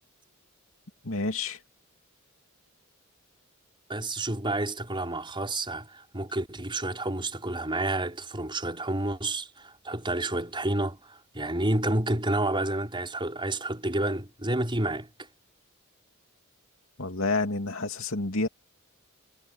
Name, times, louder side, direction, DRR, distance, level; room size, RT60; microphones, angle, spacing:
voice 1, 1.0-1.6 17.0-18.5, left 3 dB, 70° left, 3.0 m, -29 dB
voice 2, 3.9-15.1, right 1 dB, 25° right, 4.9 m, -30 dB
head